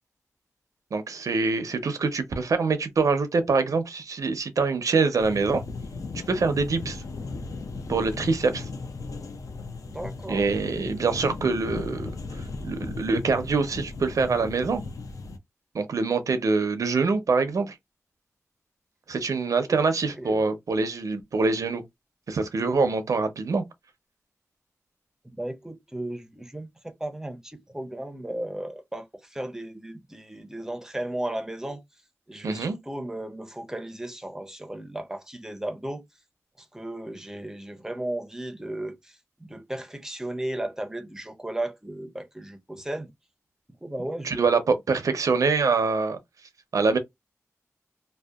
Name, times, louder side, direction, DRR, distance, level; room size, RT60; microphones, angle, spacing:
voice 1, 0.9-5.6 6.3-7.0 7.9-8.7 10.3-12.1 12.6-14.8 15.7-17.8 19.1-21.8 22.3-23.6 32.4-32.8 44.2-46.2 46.7-47.0, right 4 dB, 85° right, 0.5 m, -24 dB
sound 1, 5.2-15.4, left 3 dB, 80° left, 0.5 m, -36 dB
voice 2, 9.8-10.5 19.7-19.8 20.1-20.4 25.2-31.8 32.3-36.0 36.6-43.1 43.8-44.5, right 1 dB, 10° right, 0.5 m, -35 dB
2.6 x 2.1 x 2.3 m
wide cardioid pair, 110°, 6 cm